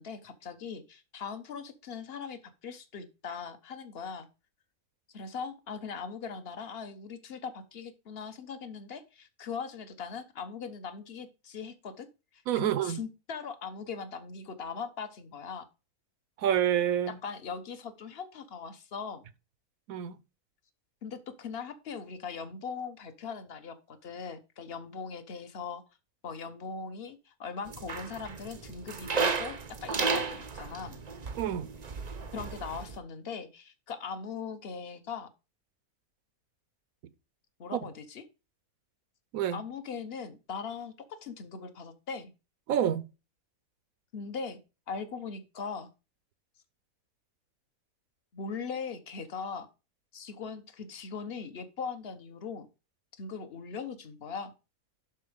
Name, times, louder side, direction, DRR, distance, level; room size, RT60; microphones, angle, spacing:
voice 1, 0.0-4.3 5.1-12.1 12.3-15.7 17.2-19.2 21.0-25.8 26.2-31.0 32.3-35.3 37.6-38.2 39.5-42.3 44.1-44.6 44.9-45.9 48.3-49.7 50.1-52.7 53.2-54.5, left 5 dB, 45° left, 1.2 m, -40 dB
voice 2, 12.5-13.0 16.4-17.2 19.9-20.2 31.4-31.7 37.7-37.8 39.3-39.6 42.7-43.0, right 10 dB, 75° right, 1.1 m, -28 dB
sound 1, 27.7-33.0, right 5 dB, 40° right, 0.6 m, -34 dB
11.5 x 4.4 x 5.0 m
omnidirectional pair, 1.5 m